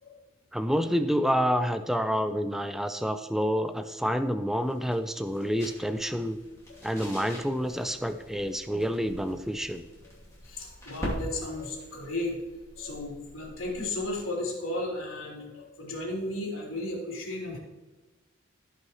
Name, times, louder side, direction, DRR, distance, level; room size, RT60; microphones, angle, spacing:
voice 1, 0.5-6.4 6.8-9.8, equal, ahead, 9 dB, 0.4 m, -28 dB
sound 1, 3.6-14.3, equal, 15° left, 2.7 m, -44 dB
voice 2, 10.4-12.4 12.8-17.6, left 1 dB, 80° left, -3 dB, 3.3 m, -34 dB
16.5 x 5.7 x 3.1 m, 1.2 s
head